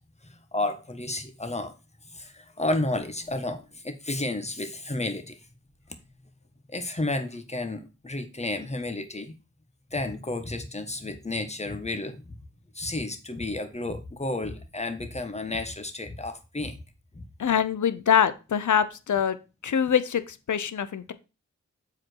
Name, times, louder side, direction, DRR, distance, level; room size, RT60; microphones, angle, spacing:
voice 1, 0.2-1.7 2.0-5.5 6.7-9.3 9.9-12.4 12.7-16.8 17.1-17.2, left 2 dB, 20° left, 6 dB, 1.5 m, -32 dB
voice 2, 17.4-19.4 19.6-21.1, left 8 dB, 85° left, 13 dB, 0.8 m, -24 dB
7.4 x 5.1 x 4.6 m, 0.29 s
wide cardioid pair, 70°, 29 cm